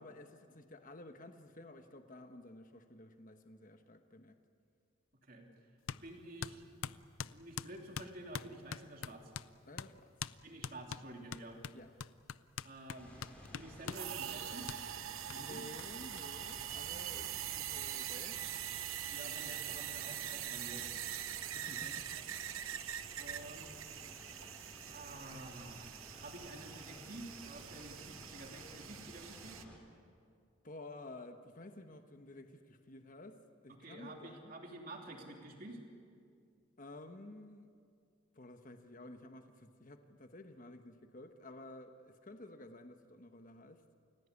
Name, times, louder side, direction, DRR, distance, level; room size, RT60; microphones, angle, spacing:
voice 1, 0.0-4.4 9.6-10.1 11.7-11.9 15.4-18.4 21.5-22.2 30.6-34.5 36.8-37.7 38.3-43.8, left 2 dB, 40° left, 7 dB, 1.2 m, -52 dB
sound 1, 5.9-6.0 6.4-9.5 9.8-9.9 10.2-10.4 10.6-14.1 14.7-14.8 15.3-15.4 15.8-15.9 16.2-16.3 16.5-17.2, left 7 dB, 85° left, 0.5 m, -43 dB
voice 2, 6.0-6.7 7.3-9.3 10.4-11.6 12.6-13.1 13.5-14.7 15.3-15.6 19.1-20.9 21.4-22.4 23.2-23.7 24.9-25.9 26.2-29.6 33.8-35.8, right 1 dB, 45° right, 1 dB, 3.2 m, -50 dB
sound 2, 13.0-29.8, equal, 5° left, 4.3 m, -55 dB
sound 3, 13.9-29.6, right 11 dB, 90° right, 0.9 m, -43 dB
29.5 x 16.5 x 8.5 m, 2.3 s
head